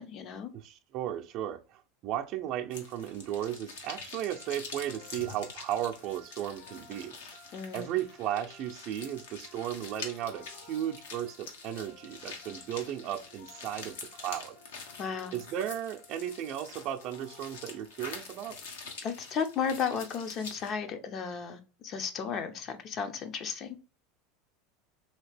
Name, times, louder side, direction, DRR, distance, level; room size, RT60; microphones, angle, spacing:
voice 1, 0.0-0.5 7.5-8.0 15.0-15.4 19.0-23.8, left 6 dB, 45° left, 7 dB, 0.6 m, -34 dB
voice 2, 0.5-7.1 7.7-14.9 15.3-18.6, right 11 dB, 55° right, 6 dB, 0.5 m, -35 dB
sound 1, 2.7-20.7, left 4 dB, 80° left, 0.9 m, -46 dB
sound 2, 4.3-18.2, left 2 dB, 65° left, 1.3 m, -57 dB
2.8 x 2.8 x 3.3 m, 0.34 s
hypercardioid pair, 100°, 0 cm